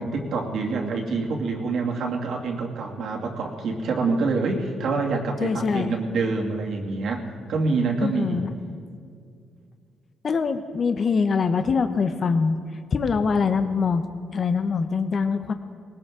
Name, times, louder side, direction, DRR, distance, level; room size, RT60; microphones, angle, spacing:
voice 1, 0.0-7.2 7.5-8.4, right 3 dB, 70° right, 1 dB, 2.5 m, -26 dB
voice 2, 5.4-5.9 8.0-8.5 10.2-12.6 12.9-14.0 14.3-15.5, left 5 dB, 45° left, 9 dB, 0.9 m, -23 dB
19.5 x 19.0 x 3.8 m, 2.3 s
cardioid pair, 90°, 0 cm